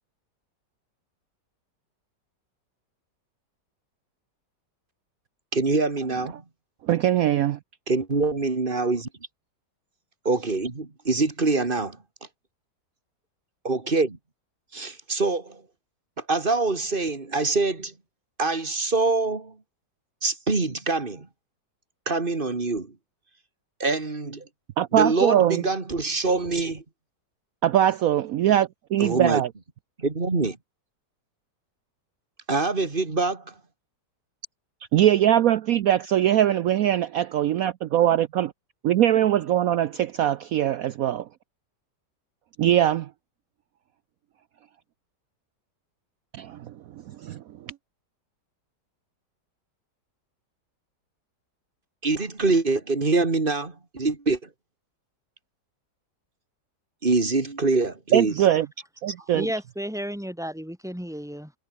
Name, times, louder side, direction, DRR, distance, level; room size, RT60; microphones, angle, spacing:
voice 1, 5.5-6.3 7.9-9.1 10.2-11.9 13.6-14.2 14.7-15.6 16.3-17.9 18.4-19.5 20.2-21.3 22.1-22.9 23.8-24.5 24.9-26.8 29.0-29.4 30.0-30.6 32.5-33.5 52.0-54.4 57.0-58.3, right 3 dB, 30° right, 2.5 m, -24 dB
voice 2, 6.8-7.6 24.8-25.6 27.6-29.5 34.9-38.5 38.8-41.3 42.6-43.1 46.3-46.7 47.1-47.7 58.1-58.7 59.0-59.4, right 11 dB, 65° right, 0.9 m, -22 dB
voice 3, 59.3-61.5, equal, ahead, 5.4 m, -33 dB
omnidirectional pair, 1.9 m